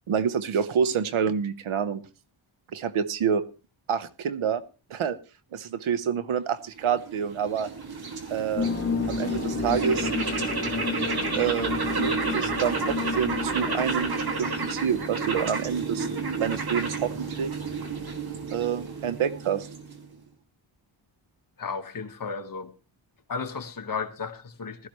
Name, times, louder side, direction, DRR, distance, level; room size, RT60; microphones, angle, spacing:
voice 1, 0.1-2.0 2.7-3.4 3.9-4.6 4.9-5.2 5.5-7.7 8.3-8.7 9.1-10.1 11.3-16.1 16.4-17.6 18.5-19.7, right 7 dB, 80° right, 1.2 m, -27 dB
sound 1, 6.8-20.2, right 4 dB, 50° right, 2.4 m, -31 dB
sound 2, 8.6-15.6, left 5 dB, 25° left, 1.1 m, -32 dB
voice 2, 21.6-22.7 23.3-24.9, left 5 dB, 45° left, 1.5 m, -34 dB
16.0 x 13.0 x 3.2 m
wide cardioid pair, 135°, 48 cm